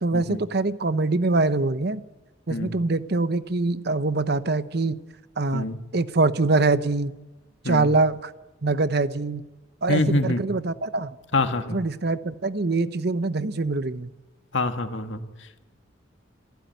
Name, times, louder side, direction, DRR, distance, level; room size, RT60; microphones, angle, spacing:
voice 1, 0.0-2.0 2.5-5.0 5.4-5.7 5.9-7.1 7.6-8.3 8.6-9.4 9.8-11.1 11.7-14.1, right 3 dB, 55° right, 13 dB, 0.9 m, -24 dB
voice 2, 7.6-7.9 9.9-10.4 11.3-11.8 14.5-15.6, left 2 dB, 70° left, 7 dB, 1.9 m, -26 dB
28.0 x 15.5 x 9.3 m, 1.1 s
head